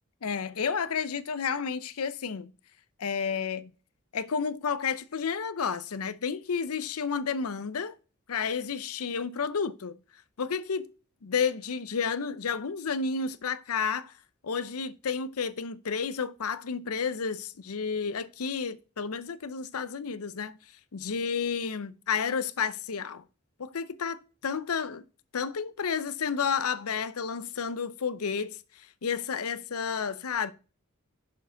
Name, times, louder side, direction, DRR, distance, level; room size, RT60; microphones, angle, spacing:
voice 1, 0.2-2.5 3.0-3.7 4.1-8.0 8.3-10.0 10.4-10.9 11.2-14.1 14.4-20.6 20.9-23.2 23.6-25.0 25.3-30.5, left 6 dB, 80° left, 0.6 m, -31 dB
6.7 x 5.0 x 5.0 m
head